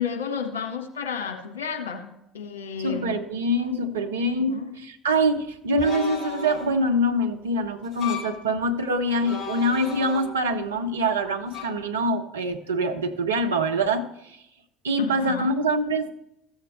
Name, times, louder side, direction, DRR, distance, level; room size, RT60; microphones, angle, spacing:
voice 1, 0.0-2.1 2.3-3.1 4.4-4.7 15.0-15.5, left 7 dB, 75° left, 2 dB, 1.4 m, -31 dB
voice 2, 2.8-14.4 14.8-16.2, right 1 dB, 75° right, 5 dB, 0.8 m, -25 dB
sound 1, 5.8-6.8 7.8-8.4 9.2-10.6 11.5-11.6, left 6 dB, 35° left, 2.4 m, -35 dB
14.5 x 7.3 x 3.0 m, 0.85 s
figure-of-eight pair, 60°, 0 cm